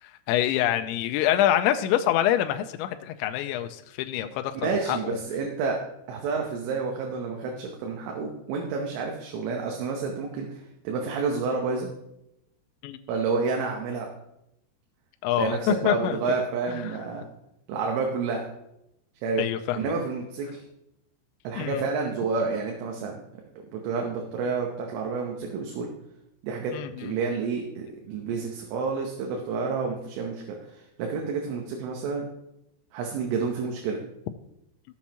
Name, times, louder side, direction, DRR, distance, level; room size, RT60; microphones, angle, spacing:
voice 1, 0.0-5.2 12.8-13.0 15.2-16.2 16.7-16.9 19.4-19.9 21.6-21.8 26.7-27.2, left 11 dB, 85° left, 7 dB, 2.7 m, -26 dB
voice 2, 4.6-5.8 6.1-11.9 13.1-14.1 15.4-17.2 17.7-18.5 19.2-19.4 19.7-20.6 21.5-23.2 23.7-25.9 26.4-32.3 32.9-34.0, right 4 dB, 85° right, 1 dB, 3.5 m, -29 dB
16.0 x 7.1 x 2.9 m, 0.83 s
omnidirectional pair, 5.6 m